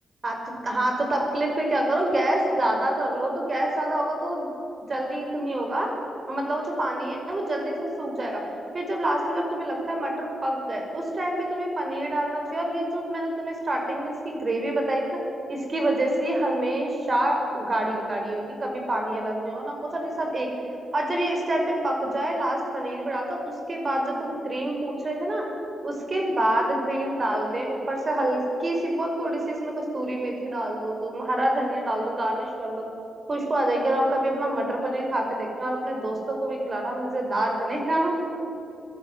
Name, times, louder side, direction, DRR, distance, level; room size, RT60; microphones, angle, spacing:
voice 1, 0.2-4.5 4.9-5.9 6.3-8.4 8.7-15.0 15.5-20.5 20.9-25.5 25.8-32.9 33.3-38.1, right 1 dB, 40° right, 1 dB, 5.9 m, -27 dB
25.5 x 17.5 x 9.7 m, 2.9 s
cardioid pair, 65°, 0 cm